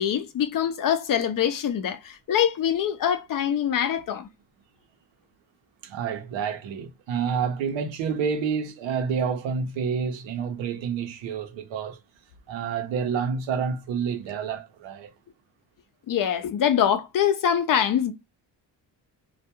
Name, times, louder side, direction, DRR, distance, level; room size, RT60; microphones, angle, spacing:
voice 1, 0.0-4.3 16.1-18.1, left 9 dB, 50° left, 0.5 m, -24 dB
voice 2, 5.8-12.0 12.5-15.1, right 6 dB, 90° right, 0.8 m, -28 dB
2.3 x 2.2 x 2.9 m
cardioid pair, 90°, 44 cm